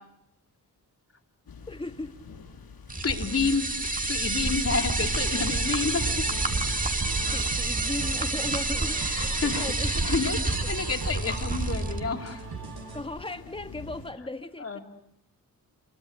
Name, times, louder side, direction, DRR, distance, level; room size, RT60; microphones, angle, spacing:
sound 1, 1.5-14.1, left 5 dB, 80° left, 5.4 m, -46 dB
voice 1, 1.7-2.2 7.3-10.1 11.1-11.2 12.9-14.8, left 2 dB, 15° left, 8 dB, 1.5 m, -37 dB
sound 2, 2.9-12.0, right 2 dB, 20° right, 1.6 m, -28 dB
voice 2, 3.0-6.3 9.0-12.5 14.6-14.8, left 4 dB, 40° left, 4 dB, 2.9 m, -30 dB
sound 3, 5.0-13.0, right 4 dB, 90° right, 4.8 m, -39 dB
28.0 x 21.5 x 7.9 m, 0.75 s
wide cardioid pair, 135°, 36 cm